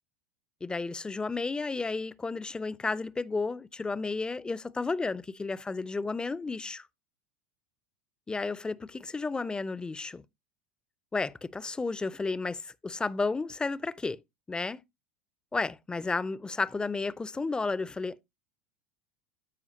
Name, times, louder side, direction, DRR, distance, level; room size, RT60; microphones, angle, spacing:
voice 1, 0.6-6.8 8.3-10.2 11.1-14.2 14.5-14.8 15.5-18.2, left 3 dB, 10° left, 0.4 m, -32 dB
13.5 x 4.7 x 2.8 m
figure-of-eight pair, 80°, 7 cm